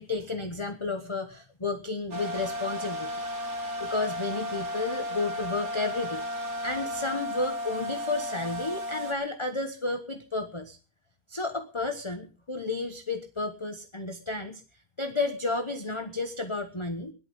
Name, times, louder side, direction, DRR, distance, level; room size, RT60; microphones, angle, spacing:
voice 1, 0.0-3.1 3.8-6.2 6.6-10.8 11.3-14.6 15.0-17.1, left 3 dB, 20° left, 6 dB, 1.1 m, -32 dB
sound 1, 2.1-9.1, left 1 dB, 55° right, 2.5 m, -34 dB
17.5 x 11.5 x 5.4 m, 0.37 s
omnidirectional pair, 1.5 m